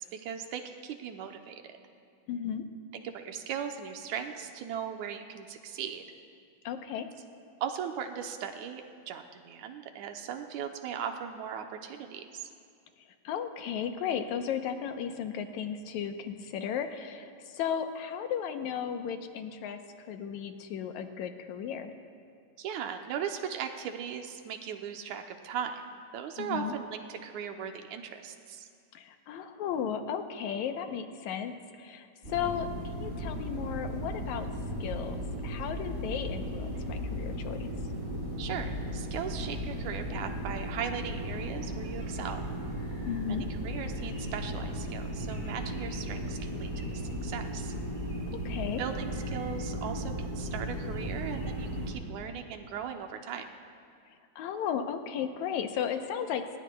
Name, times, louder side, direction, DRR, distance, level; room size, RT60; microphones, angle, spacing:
voice 1, 0.0-1.8 2.9-6.0 7.6-12.5 22.6-25.8 26.1-28.7 38.4-42.4 43.3-47.7 48.8-53.5, right 8 dB, 85° right, 5 dB, 2.2 m, -38 dB
voice 2, 2.3-2.6 6.6-7.1 13.2-19.8 20.1-21.9 26.4-26.7 28.9-34.5 34.8-37.7 43.1-43.5 48.5-48.8 54.4-56.6, left 8 dB, 80° left, 6 dB, 2.2 m, -35 dB
sound 1, 32.2-51.9, equal, 20° right, 5.2 m, -36 dB
28.0 x 20.0 x 2.3 m, 2.3 s
omnidirectional pair, 3.3 m